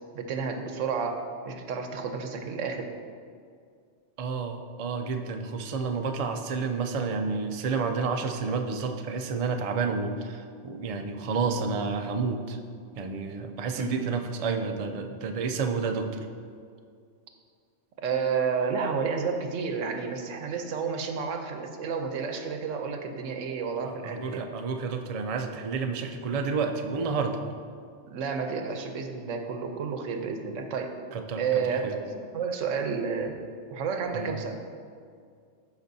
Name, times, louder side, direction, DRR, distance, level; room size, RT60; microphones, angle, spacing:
voice 1, 0.1-2.9 13.7-13.9 18.0-24.5 28.1-30.9 31.4-33.4 33.7-34.6, right 5 dB, 85° right, 5 dB, 1.1 m, -31 dB
voice 2, 4.2-12.6 13.0-16.2 23.8-27.4 31.1-31.4 31.8-31.9 34.1-34.3, right 4 dB, 55° right, 5 dB, 0.4 m, -30 dB
13.0 x 5.1 x 2.7 m, 2.2 s
omnidirectional pair, 1.3 m